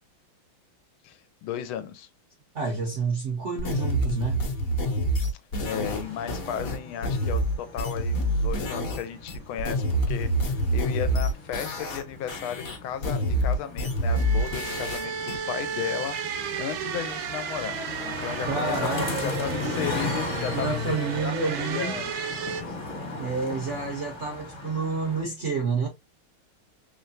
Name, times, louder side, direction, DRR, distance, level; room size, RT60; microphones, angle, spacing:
voice 1, 1.0-2.1 5.7-16.2 16.6-22.1 22.4-22.6, left 9 dB, 80° left, 1.4 m, -35 dB
voice 2, 2.5-4.4 18.5-19.2 20.5-22.0 23.2-25.9, right 4 dB, 55° right, 0.8 m, -29 dB
sound 1, 3.6-9.0 9.3-12.0 12.3-15.4, equal, 50° left, 1.2 m, -27 dB
sound 2, 5.8-25.2, left 3 dB, 35° left, 0.9 m, -37 dB
sound 3, 14.1-22.6, right 7 dB, 80° right, 1.4 m, -34 dB
3.5 x 3.1 x 2.6 m
omnidirectional pair, 2.3 m